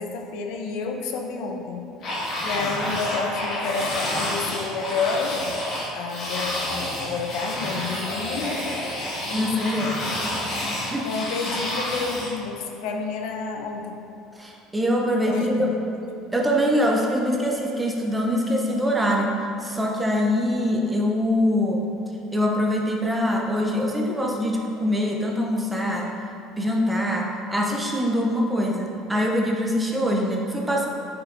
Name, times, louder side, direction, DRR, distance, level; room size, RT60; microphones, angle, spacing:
voice 1, 0.0-1.8 2.4-5.4 5.9-8.6 9.3-9.7 11.0-14.0 15.3-15.7, left 4 dB, 70° left, 2 dB, 0.8 m, -30 dB
sound 1, 2.0-12.3, left 1 dB, 50° left, 1.7 m, -29 dB
voice 2, 9.3-10.0 10.8-11.1 14.4-15.7 16.3-19.3 19.6-21.8 22.3-26.1 26.6-30.9, equal, 10° right, -1 dB, 0.8 m, -23 dB
9.8 x 5.9 x 2.6 m, 2.6 s
cardioid pair, 145°, 0 cm